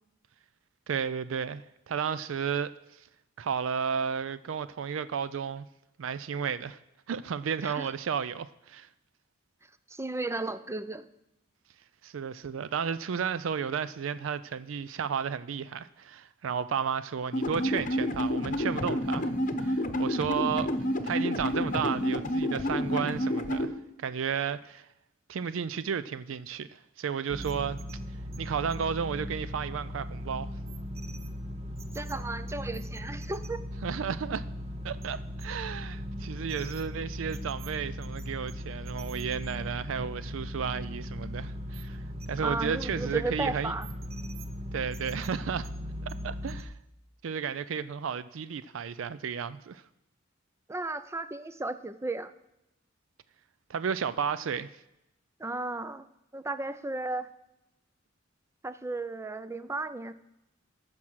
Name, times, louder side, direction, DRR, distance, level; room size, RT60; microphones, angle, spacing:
voice 1, 0.9-2.7 3.4-5.6 6.0-6.8 7.1-8.9 12.0-19.3 19.6-20.7 21.0-23.7 24.0-24.9 25.3-27.8 28.4-30.5 33.8-34.4 34.8-42.0 42.3-43.7 44.7-45.7 46.1-46.7 47.2-49.8 53.7-54.7, right 7 dB, 70° right, 0.4 m, -33 dB
voice 2, 7.6-7.9 9.9-11.1 31.9-33.6 42.4-43.9 50.7-52.3 55.4-56.1 56.3-57.3 58.6-60.1, right 2 dB, 15° right, 0.5 m, -34 dB
sound 1, 17.3-23.7, equal, 40° left, 1.0 m, -29 dB
sound 2, 27.3-46.6, equal, 30° right, 0.8 m, -38 dB
14.5 x 6.0 x 6.2 m
head